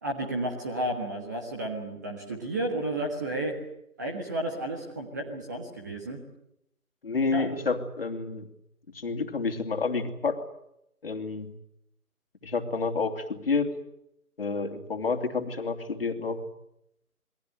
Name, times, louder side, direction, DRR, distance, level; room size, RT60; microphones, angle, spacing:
voice 1, 0.0-3.5 4.0-6.2 7.3-7.5, right 1 dB, 10° right, 1 dB, 1.6 m, -32 dB
voice 2, 7.0-8.5 8.9-10.4 11.0-11.5 12.4-13.8 14.4-16.4, left 4 dB, 40° left, 6 dB, 3.0 m, -29 dB
28.0 x 22.5 x 7.9 m, 0.79 s
figure-of-eight pair, 160°, 45 cm